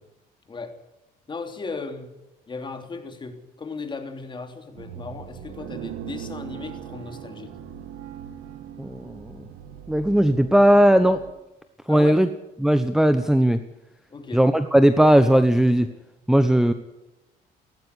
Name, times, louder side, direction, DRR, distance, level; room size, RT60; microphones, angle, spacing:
voice 1, 0.5-0.8 1.3-2.1 2.5-7.5 11.9-12.2 14.1-14.4, left 4 dB, 30° left, 6 dB, 3.3 m, -36 dB
sound 1, 4.8-11.3, right 9 dB, 80° right, 2.3 m, -40 dB
voice 2, 8.8-9.5 9.9-11.2 11.9-12.3 12.6-13.6 14.3-15.9 16.3-16.7, right 1 dB, 5° right, 10 dB, 1.1 m, -18 dB
17.5 x 15.5 x 9.8 m, 0.96 s
cardioid pair, 110°, 17 cm